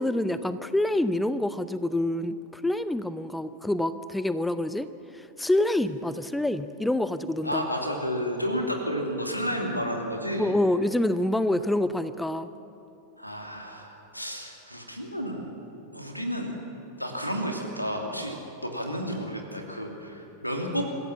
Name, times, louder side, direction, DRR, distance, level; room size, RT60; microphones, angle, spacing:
voice 1, 0.0-4.9 5.1-7.7 10.4-12.5, left 1 dB, 5° left, 13 dB, 0.6 m, -27 dB
voice 2, 7.4-10.5 13.2-15.5 15.9-16.5 17.0-20.9, equal, 90° left, 1 dB, 2.8 m, -31 dB
26.0 x 15.5 x 7.3 m, 2.9 s
figure-of-eight pair, 90°, 0 cm